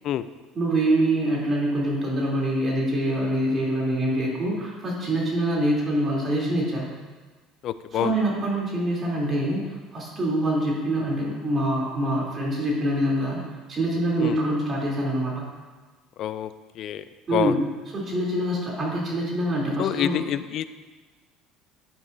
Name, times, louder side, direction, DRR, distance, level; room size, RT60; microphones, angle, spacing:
voice 1, 0.5-6.9 7.9-13.4 13.7-15.5 17.3-17.7 17.9-20.2, right 1 dB, 35° right, -4 dB, 3.2 m, -25 dB
voice 2, 7.6-8.1 14.2-14.4 16.2-17.0 17.3-17.6 19.8-20.7, left 11 dB, 55° left, 14 dB, 0.4 m, -27 dB
11.0 x 8.7 x 2.7 m, 1.3 s
supercardioid pair, 95°, 0 cm